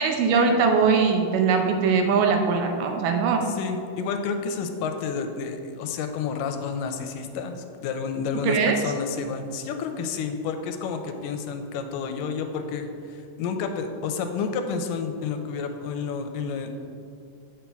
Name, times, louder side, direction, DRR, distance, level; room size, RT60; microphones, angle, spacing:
voice 1, 0.0-3.5 8.4-8.8, right 5 dB, 80° right, 4 dB, 2.3 m, -21 dB
voice 2, 3.5-7.6 7.8-16.7, left 5 dB, 85° left, 6 dB, 2.3 m, -30 dB
8.9 x 6.5 x 3.4 m, 2.4 s
omnidirectional pair, 3.8 m